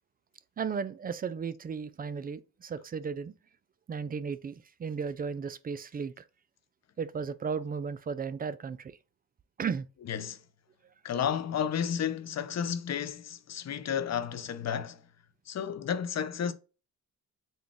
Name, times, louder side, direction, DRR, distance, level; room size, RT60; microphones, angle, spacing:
voice 1, 0.6-3.3 3.9-4.5 4.8-6.2 7.0-8.9 9.6-9.9, right 6 dB, 25° right, 0.3 m, -35 dB
voice 2, 10.1-10.4 11.0-15.0 15.5-16.5, left 8 dB, 50° left, 0.6 m, -32 dB
3.8 x 2.3 x 3.4 m
cardioid pair, 70°, 36 cm